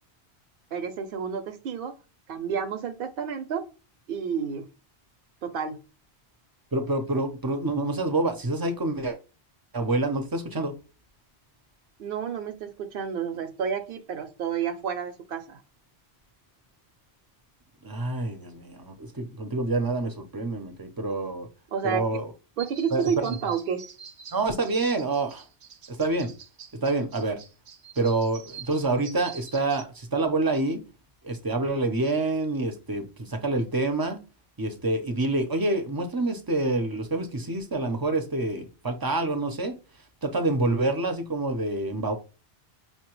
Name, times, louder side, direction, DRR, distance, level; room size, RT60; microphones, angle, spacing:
voice 1, 0.7-1.9 2.3-3.7 4.1-4.7 5.4-5.8 12.0-15.6 21.7-22.1 22.6-23.9, right 7 dB, 65° right, 0.7 m, -30 dB
voice 2, 6.7-9.2 9.7-10.7 17.8-21.5 21.8-22.3 22.9-23.1 24.3-25.5 25.9-26.3 26.8-27.4 28.0-30.8 31.2-34.2 34.6-39.8 40.2-42.1, right 2 dB, 30° right, 0.4 m, -27 dB
sound 1, 22.6-29.8, right 6 dB, 85° right, 0.9 m, -46 dB
5.3 x 2.2 x 3.0 m
omnidirectional pair, 1.1 m